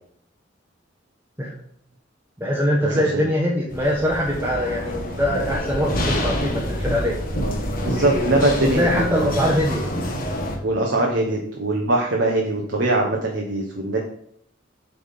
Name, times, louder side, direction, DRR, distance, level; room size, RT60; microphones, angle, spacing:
voice 1, 2.4-7.2 8.6-9.8, equal, 10° right, -4 dB, 1.0 m, -22 dB
sound 1, 3.7-10.6, equal, 50° left, 1.4 m, -27 dB
voice 2, 7.3-9.3 10.6-14.0, right 2 dB, 70° right, 0 dB, 1.0 m, -22 dB
8.0 x 3.6 x 5.3 m, 0.68 s
head